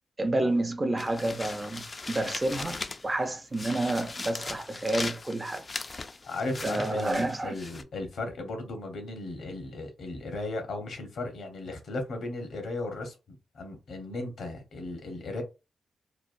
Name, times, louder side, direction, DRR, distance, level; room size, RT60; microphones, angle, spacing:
voice 1, 0.2-5.7 6.6-7.6, right 2 dB, 25° right, 0.5 m, -29 dB
sound 1, 1.0-3.2 3.5-7.8, left 3 dB, 35° left, 0.4 m, -39 dB
voice 2, 6.2-13.2 13.5-15.4, left 2 dB, 75° left, 0.9 m, -36 dB
3.1 x 2.3 x 2.5 m
cardioid pair, 85°, 0 cm